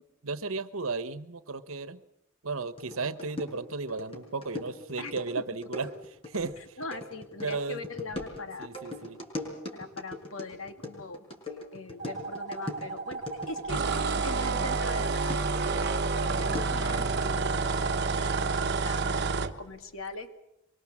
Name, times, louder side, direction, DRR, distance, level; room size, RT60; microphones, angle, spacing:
voice 1, 0.2-2.0 2.4-6.8 7.4-7.8 8.6-9.2, right 3 dB, 85° right, 13 dB, 1.2 m, -34 dB
sound 1, 2.8-14.9 15.3-16.9, left 1 dB, 30° left, 5.5 m, -41 dB
voice 2, 5.0-5.4 6.6-8.7 9.7-11.2 11.7-13.8 14.2-20.3, left 3 dB, 75° left, 7 dB, 2.4 m, -41 dB
sound 2, 12.0-19.3, right 4 dB, 40° right, 2.3 m, -38 dB
sound 3, 13.7-19.5, right 4 dB, 55° right, 1.2 m, -29 dB
24.5 x 23.5 x 7.4 m, 0.82 s
head